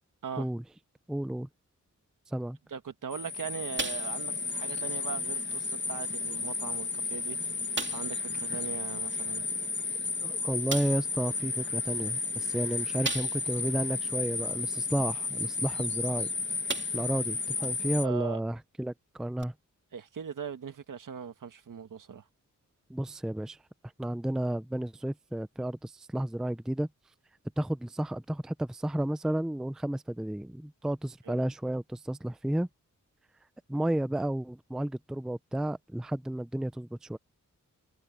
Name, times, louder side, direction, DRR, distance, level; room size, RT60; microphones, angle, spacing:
voice 1, 1.1-1.5 2.3-2.6 10.2-16.3 16.9-19.5 22.9-23.6 24.0-26.9 27.6-32.7 33.7-37.2, right 1 dB, ahead, 0.5 m, -32 dB
voice 2, 2.7-7.4 7.9-9.5 18.0-18.4 19.9-22.2 31.3-31.4, right 7 dB, 75° right, 1.7 m, -40 dB
sound 1, 3.1-18.1, left 4 dB, 35° left, 1.6 m, -33 dB
sound 2, 3.8-4.4 4.8-4.9 5.5-5.6 6.5-6.6 6.9-7.0 7.7-8.2 9.8-9.9 10.7-11.1 13.0-13.6 14.1-14.2 16.0-16.2 16.7-17.2 17.6-17.7 19.4-19.5, right 3 dB, 35° right, 2.4 m, -36 dB
wide cardioid pair, 140°, 32 cm